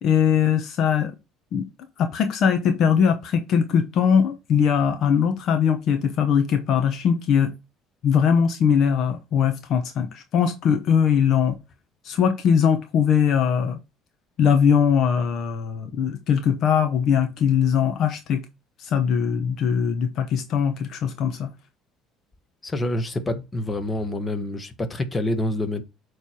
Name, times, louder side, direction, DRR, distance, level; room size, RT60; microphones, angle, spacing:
voice 1, 0.0-1.1 1.5-1.7 2.0-7.5 8.0-11.6 12.0-13.8 14.4-18.4 18.8-21.5, left 7 dB, 60° left, 0.9 m, -21 dB
voice 2, 22.6-25.8, left 1 dB, 25° left, 1.4 m, -27 dB
8.2 x 3.4 x 4.4 m
hypercardioid pair, 70°, 0 cm